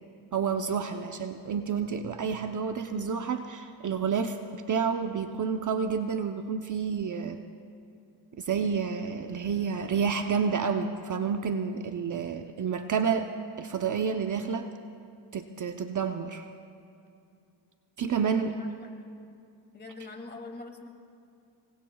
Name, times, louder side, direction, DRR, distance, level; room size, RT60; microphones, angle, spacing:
voice 1, 0.3-7.4 8.4-13.3 13.6-14.7 15.3-16.4 18.0-18.6, right 6 dB, 40° right, 6 dB, 0.8 m, -29 dB
voice 2, 18.4-18.9 19.7-20.9, left 3 dB, 20° left, 2 dB, 2.3 m, -43 dB
27.0 x 22.5 x 2.3 m, 2.5 s
cardioid pair, 90°, 47 cm